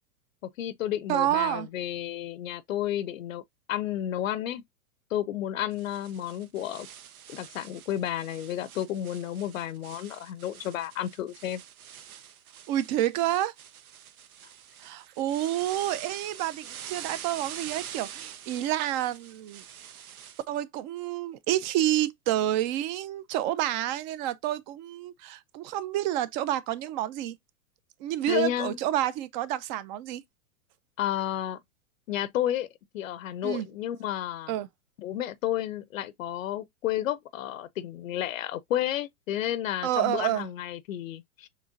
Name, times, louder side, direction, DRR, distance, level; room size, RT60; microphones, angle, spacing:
voice 1, 0.6-3.4 3.7-4.6 5.1-6.9 7.3-11.6 28.3-28.8 31.0-31.6 32.1-32.7 32.9-34.5 35.0-41.5, left 12 dB, 65° left, 0.6 m, -31 dB
voice 2, 1.1-1.7 12.7-13.5 14.8-19.6 20.5-27.4 28.0-30.2 33.4-33.7 34.5-34.7 39.8-40.5, right 13 dB, 35° right, 0.5 m, -29 dB
sound 1, 5.7-20.4, right 9 dB, 75° right, 0.7 m, -45 dB
6.6 x 3.1 x 2.5 m
hypercardioid pair, 105°, 43 cm